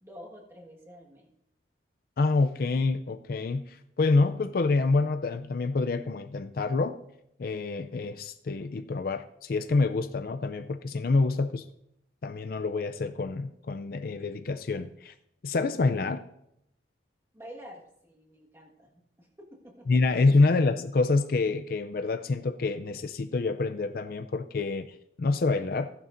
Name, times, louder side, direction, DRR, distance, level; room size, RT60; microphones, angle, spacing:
voice 1, 0.0-1.3 17.3-20.2, equal, 15° right, -1 dB, 1.5 m, -49 dB
voice 2, 2.2-7.0 7.4-11.7 12.2-15.1 15.4-16.2 19.9-24.9 25.2-25.9, left 3 dB, 55° left, 9 dB, 0.4 m, -27 dB
15.0 x 10.5 x 2.6 m, 0.77 s
head